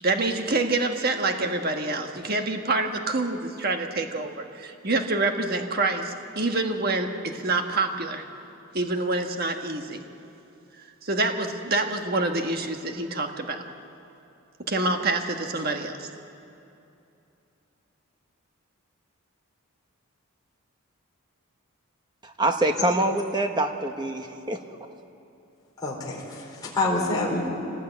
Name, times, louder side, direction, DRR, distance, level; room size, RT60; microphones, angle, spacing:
voice 1, 0.0-8.2 8.7-10.0 11.0-13.7 14.7-16.1, right 2 dB, 45° right, 4 dB, 1.5 m, -27 dB
voice 2, 22.2-24.6, right 1 dB, 20° right, 5 dB, 1.3 m, -25 dB
voice 3, 25.8-27.5, left 2 dB, 20° left, -4 dB, 4.3 m, -27 dB
25.0 x 18.5 x 9.2 m, 2.7 s
head